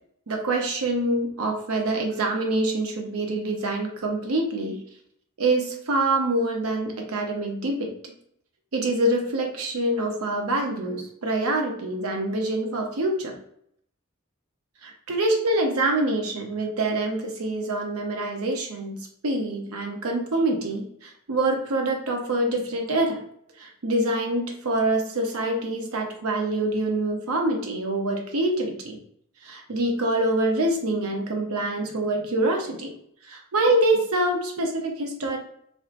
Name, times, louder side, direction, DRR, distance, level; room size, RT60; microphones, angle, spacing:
voice 1, 0.3-4.8 5.4-8.1 8.7-13.3 14.8-19.0 19.2-23.2 23.6-29.0 29.4-32.9 33.3-35.4, right 2 dB, 85° right, 2 dB, 0.7 m, -25 dB
3.2 x 2.7 x 2.5 m, 0.70 s
head